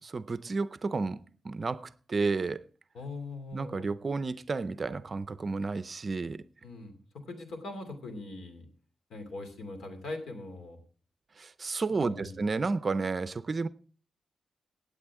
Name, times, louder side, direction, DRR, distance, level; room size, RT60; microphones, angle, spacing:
voice 1, 0.0-1.2 1.4-2.6 3.5-6.4 11.4-13.7, right 4 dB, 30° right, 0.5 m, -31 dB
voice 2, 2.9-3.9 6.6-8.7 9.1-10.8 12.0-12.4, left 2 dB, 85° left, 2.7 m, -41 dB
17.0 x 8.4 x 3.6 m
wide cardioid pair, 170°, 0 cm